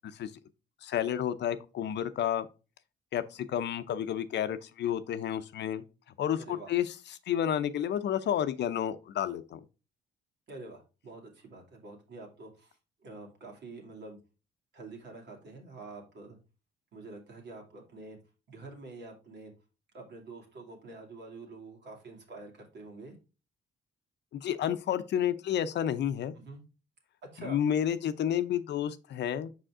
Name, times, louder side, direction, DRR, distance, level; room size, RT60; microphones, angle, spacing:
voice 1, 0.8-2.5 3.1-5.8 6.2-6.9 7.3-9.6 24.3-26.3 27.4-29.5, left 10 dB, 65° left, 0.7 m, -30 dB
voice 2, 6.4-6.7 10.5-12.8 13.0-14.2 14.7-16.4 16.9-18.2 18.5-19.5 19.9-23.1 26.4-26.6 27.3-27.6, right 3 dB, 65° right, 2.7 m, -47 dB
5.7 x 5.0 x 3.6 m
supercardioid pair, 65°, 19 cm